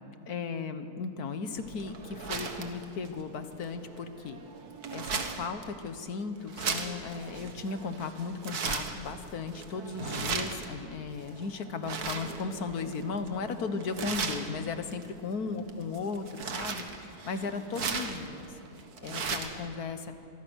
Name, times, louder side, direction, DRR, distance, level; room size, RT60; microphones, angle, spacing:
voice 1, 0.3-4.4 4.9-18.5 19.0-20.1, left 4 dB, 75° left, 9 dB, 1.8 m, -36 dB
sound 1, 1.6-19.7, right 5 dB, 75° right, 2.0 m, -38 dB
25.5 x 24.0 x 6.4 m, 2.7 s
omnidirectional pair, 1.6 m